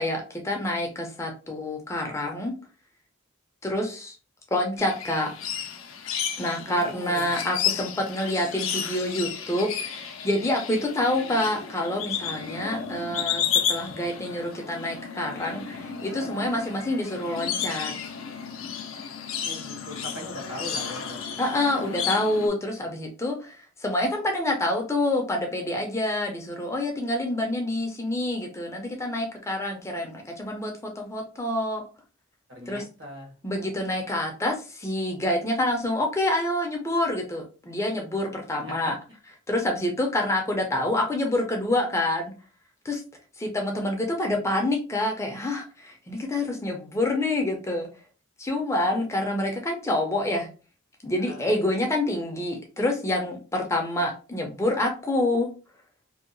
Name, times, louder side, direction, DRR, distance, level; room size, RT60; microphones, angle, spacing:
voice 1, 0.0-2.5 3.6-4.2 4.5-5.3 6.4-17.9 19.6-19.7 21.4-31.8 32.7-32.9 33.4-38.9 39.5-42.3 42.8-43.0 43.4-47.9 48.4-50.5 51.0-55.5, left 1 dB, 15° left, 2 dB, 0.4 m, -27 dB
sound 1, 4.8-22.5, left 8 dB, 80° left, 0.4 m, -32 dB
voice 2, 6.7-7.3 19.4-21.4 32.5-33.3 38.7-38.9 51.2-51.5, left 1 dB, 65° right, 1 dB, 1.0 m, -40 dB
2.7 x 2.2 x 2.5 m, 0.35 s
head